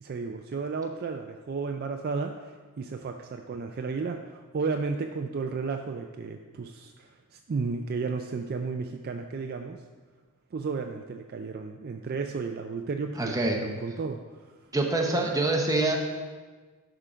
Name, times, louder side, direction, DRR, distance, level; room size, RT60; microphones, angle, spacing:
voice 1, 0.0-9.8 10.5-14.2 15.1-15.3, right 4 dB, 45° right, 5 dB, 0.3 m, -33 dB
voice 2, 13.2-13.6 14.7-16.1, right 2 dB, 15° right, 1 dB, 0.8 m, -25 dB
11.0 x 3.7 x 5.0 m, 1.4 s
head